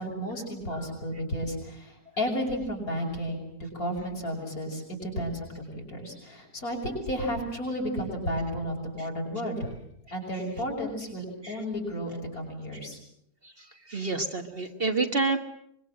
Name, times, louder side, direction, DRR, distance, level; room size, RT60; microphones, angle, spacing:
voice 1, 0.0-9.7 10.1-13.0, equal, 65° left, 0 dB, 6.7 m, -32 dB
voice 2, 13.9-15.4, right 3 dB, 40° right, 5 dB, 1.6 m, -27 dB
25.0 x 22.5 x 7.6 m, 0.75 s
omnidirectional pair, 1.7 m